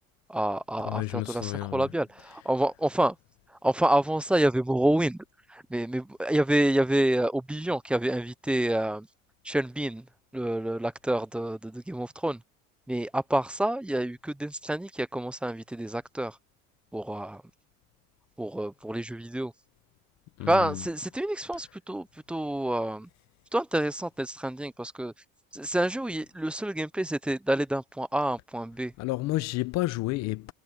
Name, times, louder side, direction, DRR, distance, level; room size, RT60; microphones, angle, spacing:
voice 1, 0.3-3.2 3.5-9.1 9.4-10.1 10.3-12.4 12.9-16.4 16.9-17.4 18.4-19.5 20.4-23.1 23.5-25.1 25.5-28.9, right 1 dB, 5° right, 0.5 m, -28 dB
voice 2, 0.9-1.9 20.4-20.8 29.0-30.5, left 18 dB, 60° left, 0.8 m, -30 dB
cardioid pair, 145°, 30 cm